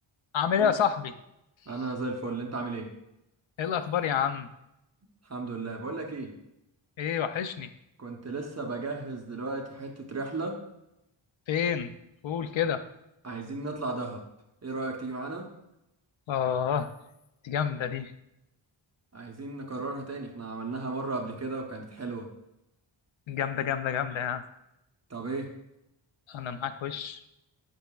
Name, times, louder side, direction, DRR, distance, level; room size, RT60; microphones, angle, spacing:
voice 1, 0.3-1.1 3.6-4.5 7.0-7.7 11.5-11.9 12.2-12.8 16.3-16.9 17.4-18.1 23.3-24.4 26.3-27.2, left 8 dB, 70° left, 10 dB, 0.6 m, -28 dB
voice 2, 1.7-2.9 5.2-6.3 8.0-10.6 13.2-14.2 14.6-15.5 19.1-22.3 25.1-25.5, right 3 dB, 35° right, 1 dB, 0.8 m, -35 dB
9.1 x 5.6 x 2.3 m, 0.86 s
wide cardioid pair, 130°, 48 cm